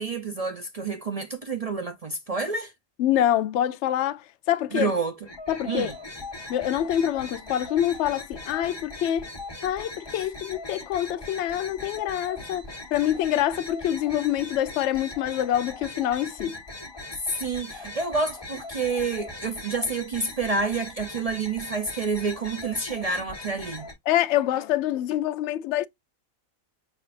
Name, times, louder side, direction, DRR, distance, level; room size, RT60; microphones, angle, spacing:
voice 1, 0.0-2.7 4.7-5.2 5.7-5.9 17.3-23.9, right 4 dB, 50° right, 0.4 m, -28 dB
voice 2, 3.0-4.9 5.5-5.9 6.5-9.3 9.6-16.6 24.1-25.9, left 11 dB, 65° left, 0.7 m, -26 dB
sound 1, 5.2-23.9, left 2 dB, 20° left, 1.3 m, -40 dB
6.3 x 2.6 x 2.4 m
omnidirectional pair, 1.5 m